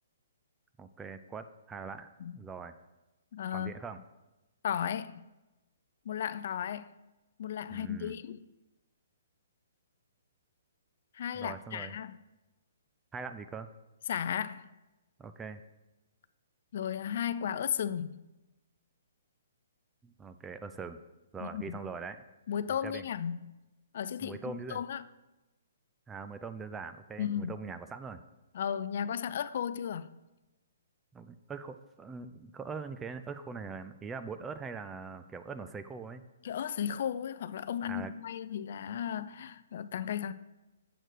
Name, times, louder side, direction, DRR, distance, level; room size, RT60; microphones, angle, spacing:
voice 1, 0.8-2.7 3.5-4.0 7.7-8.2 11.3-12.0 13.1-13.7 15.2-15.6 20.0-21.0 21.3-22.2 22.7-23.0 24.2-24.8 26.1-28.2 31.1-36.2 37.9-38.1, right 5 dB, 15° right, 0.4 m, -42 dB
voice 2, 3.3-3.7 4.6-5.2 6.1-6.9 7.4-8.4 11.1-12.2 14.1-14.7 16.7-18.2 21.4-21.8 22.5-23.4 23.9-24.4 24.7-25.0 27.2-27.5 28.5-30.1 36.4-40.3, left 9 dB, 55° left, 0.3 m, -35 dB
7.6 x 4.5 x 4.8 m
hypercardioid pair, 140°, 0 cm